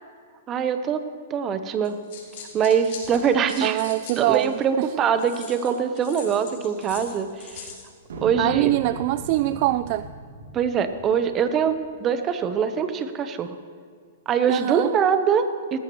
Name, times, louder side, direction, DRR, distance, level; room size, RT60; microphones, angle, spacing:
voice 1, 0.5-1.0 1.3-2.0 2.5-3.8 4.2-7.7 8.2-8.7 10.5-13.6 14.3-15.8, right 7 dB, 25° right, 10 dB, 0.9 m, -23 dB
sound 1, 1.8-4.6 5.2-7.9, left 6 dB, 55° left, 4.3 m, -42 dB
voice 2, 3.6-4.9 8.4-10.1 14.5-15.0, right 16 dB, 45° right, 14 dB, 0.3 m, -23 dB
sound 2, 8.0-11.7, right 2 dB, 80° right, 3.1 m, -39 dB
18.0 x 14.0 x 3.1 m, 2.1 s
hypercardioid pair, 135°, 0 cm